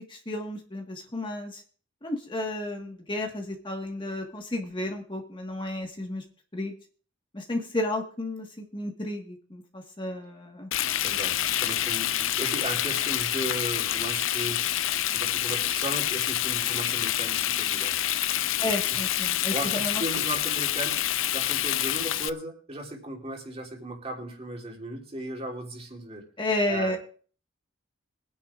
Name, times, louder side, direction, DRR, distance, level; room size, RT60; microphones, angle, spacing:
voice 1, 0.1-1.6 2.0-6.2 6.5-6.7 7.3-10.7 18.6-20.0 26.4-27.0, left 1 dB, 25° left, 2 dB, 1.5 m, -32 dB
Frying (food), 10.7-22.3, left 12 dB, 80° left, 0.5 m, -27 dB
voice 2, 11.0-14.7 15.1-18.0 18.6-18.8 19.5-26.2 26.7-27.0, right 1 dB, 30° right, 1 dB, 3.1 m, -36 dB
23.5 x 10.0 x 2.5 m, 0.42 s
head